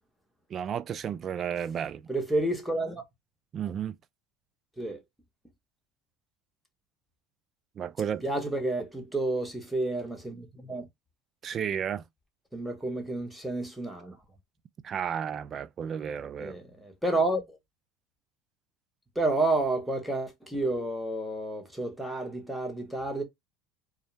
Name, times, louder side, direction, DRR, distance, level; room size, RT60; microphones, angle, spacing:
voice 1, 0.5-2.1 3.5-4.0 7.8-8.2 11.4-12.1 14.8-16.6, right 8 dB, 40° right, 0.3 m, -33 dB
voice 2, 2.1-3.0 4.8-5.0 8.2-10.9 12.5-14.2 16.4-17.6 19.1-23.2, right 2 dB, ahead, 0.9 m, -30 dB
2.3 x 2.0 x 3.1 m
supercardioid pair, 95°, 0 cm